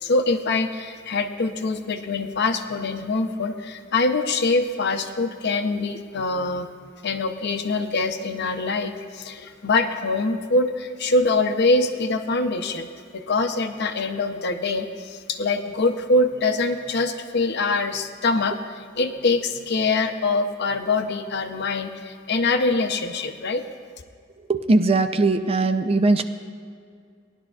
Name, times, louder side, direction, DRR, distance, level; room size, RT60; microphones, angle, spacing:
voice 1, 0.0-6.7 7.0-23.6, left 3 dB, 60° left, 7 dB, 0.7 m, -24 dB
voice 2, 24.5-26.2, right 2 dB, 30° right, 8 dB, 0.5 m, -19 dB
19.0 x 11.0 x 2.4 m, 2.1 s
head